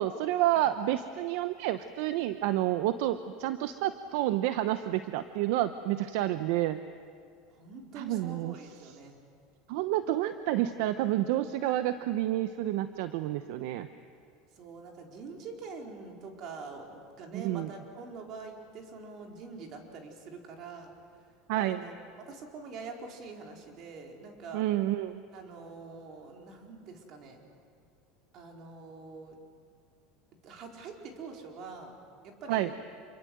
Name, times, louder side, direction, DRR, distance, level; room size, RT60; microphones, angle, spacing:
voice 1, 0.0-6.8 8.0-8.5 8.8-8.9 9.7-13.9 17.3-17.7 21.5-21.8 24.5-25.2 32.5-32.7, right 13 dB, 70° right, 11 dB, 0.9 m, -29 dB
voice 2, 7.5-9.2 14.6-20.9 21.6-22.0 22.3-24.6 25.3-27.4 28.3-29.4 30.4-31.9 32.2-32.7, right 4 dB, 50° right, 1 dB, 4.6 m, -45 dB
27.5 x 23.5 x 7.9 m, 2.3 s
supercardioid pair, 115°, 0 cm